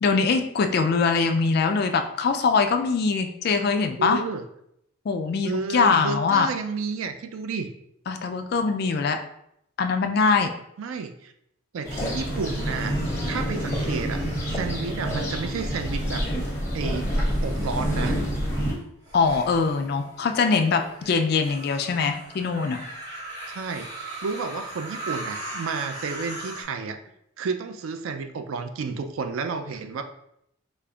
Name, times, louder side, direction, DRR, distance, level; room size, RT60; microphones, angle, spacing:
voice 1, 0.0-4.2 5.1-6.5 8.1-9.2 9.8-10.5 19.1-22.8, left 4 dB, 50° left, 7 dB, 0.3 m, -22 dB
voice 2, 4.0-4.4 5.4-7.7 10.8-11.3 11.7-12.9 13.3-16.3 16.7-17.1 17.4-18.2 23.5-23.9 24.2-27.0 27.4-30.0, right 5 dB, 85° right, 7 dB, 0.4 m, -31 dB
sound 1, 11.8-18.7, equal, 15° left, 0.8 m, -27 dB
sound 2, 12.0-15.5 16.0-16.5 17.3-26.6, right 2 dB, 60° right, 1.2 m, -40 dB
5.0 x 2.4 x 2.3 m, 0.76 s
head